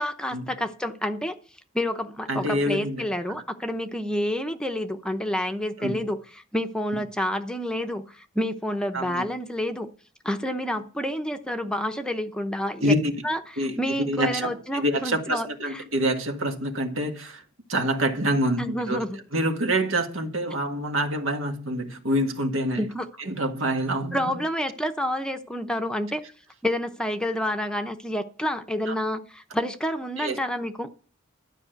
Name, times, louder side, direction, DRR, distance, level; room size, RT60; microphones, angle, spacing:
voice 1, 0.0-1.4 1.7-6.2 6.5-9.9 10.2-12.9 13.2-15.8 18.6-19.2 22.7-23.1 24.1-26.2 26.6-30.9, left 1 dB, 5° left, 0.8 m, -29 dB
voice 2, 2.3-3.0 5.8-6.0 8.9-9.3 12.8-13.2 13.6-17.4 17.7-19.0 19.3-22.8 23.2-24.3 28.9-29.0 30.2-30.4, right 1 dB, 75° right, 1.8 m, -26 dB
12.5 x 5.4 x 7.9 m
head